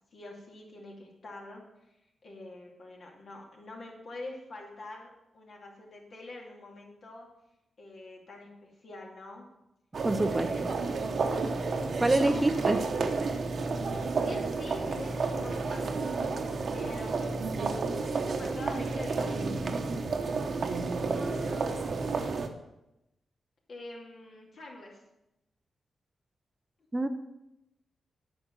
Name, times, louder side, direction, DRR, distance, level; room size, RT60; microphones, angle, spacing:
voice 1, 0.1-1.6 2.2-7.3 7.8-9.5 10.2-11.4 12.1-12.7 14.1-16.5 16.7-17.3 18.1-19.5 20.6-22.3 23.7-25.0, left 2 dB, 60° left, -1 dB, 2.6 m, -45 dB
sound 1, 9.9-22.5, right 4 dB, 55° right, 1.0 m, -31 dB
voice 2, 10.0-10.7 12.0-12.8 26.9-27.1, right 2 dB, 20° right, 8 dB, 0.6 m, -26 dB
9.1 x 5.8 x 7.5 m, 0.90 s
cardioid pair, 100°, 0 cm